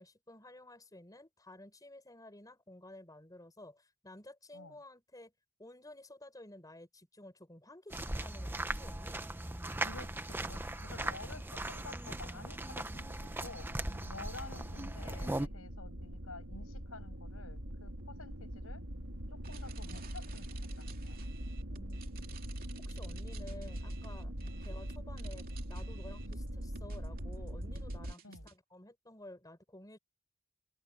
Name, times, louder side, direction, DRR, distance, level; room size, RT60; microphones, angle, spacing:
voice 1, 0.0-5.3 5.6-9.3 21.7-22.2 22.5-24.3 24.6-30.0, left 1 dB, 15° left, 6.0 m, -53 dB
sound 1, 7.9-15.5, right 1 dB, 10° right, 0.8 m, -39 dB
voice 2, 9.8-13.1 13.4-13.7 14.0-18.8 19.3-20.5 20.8-21.2 24.4-24.6 28.2-28.5, left 3 dB, 75° left, 7.1 m, -50 dB
sound 2, 12.2-28.1, equal, 70° right, 3.8 m, -43 dB
sound 3, 19.4-28.5, right 3 dB, 40° right, 2.8 m, -52 dB
head